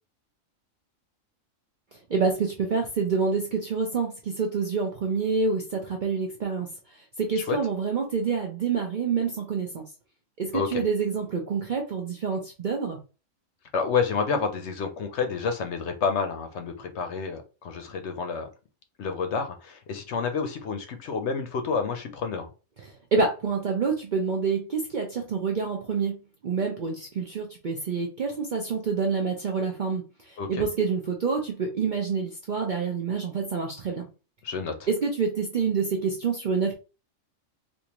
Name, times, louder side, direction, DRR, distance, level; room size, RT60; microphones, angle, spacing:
voice 1, 2.1-9.8 10.4-13.0 22.8-26.2 26.4-34.1 34.9-36.7, right 5 dB, 55° right, 1 dB, 0.5 m, -27 dB
voice 2, 13.7-18.5 19.0-22.5 30.4-30.6 34.4-34.7, left 5 dB, 65° left, 7 dB, 0.8 m, -29 dB
3.5 x 2.6 x 2.9 m, 0.32 s
omnidirectional pair, 1.4 m